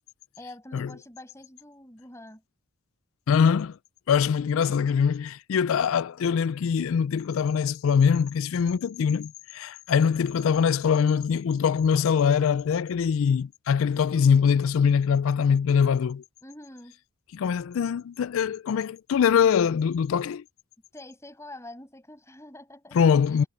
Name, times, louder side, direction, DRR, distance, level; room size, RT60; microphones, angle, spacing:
voice 1, 0.4-2.4 16.4-17.0 20.9-23.1 23.4-23.5, left 1 dB, 10° left, 6.6 m, -45 dB
voice 2, 3.3-3.8 4.1-16.2 17.3-20.4 22.9-23.4, left 7 dB, 65° left, 0.3 m, -23 dB
head